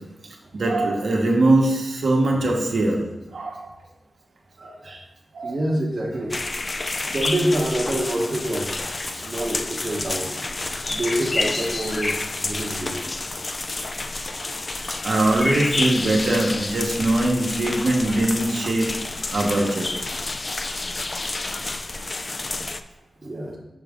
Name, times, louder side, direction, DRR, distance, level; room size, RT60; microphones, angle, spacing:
voice 1, 0.5-3.0 3.3-3.7 4.6-4.8 5.3-5.6 15.0-18.9 19.3-19.9, right 2 dB, 70° right, 0 dB, 1.2 m, -21 dB
voice 2, 5.4-6.3 7.1-8.7 9.1-10.3 10.9-13.1 17.6-17.7 23.2-23.6, right 1 dB, 40° right, -2 dB, 1.0 m, -26 dB
sound 1, 6.3-22.8, left 2 dB, 35° left, 0.3 m, -29 dB
6.2 x 5.0 x 3.6 m, 0.97 s
wide cardioid pair, 105°, 0 cm